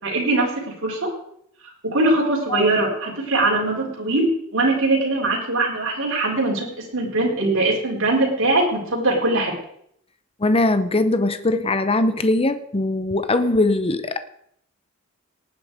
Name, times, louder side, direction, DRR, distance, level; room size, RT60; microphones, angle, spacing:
voice 1, 0.0-1.1 1.8-9.5, right 2 dB, 65° right, 4.6 m, -21 dB
voice 2, 10.4-14.2, left 2 dB, 25° left, 0.8 m, -21 dB
19.0 x 9.3 x 5.0 m
head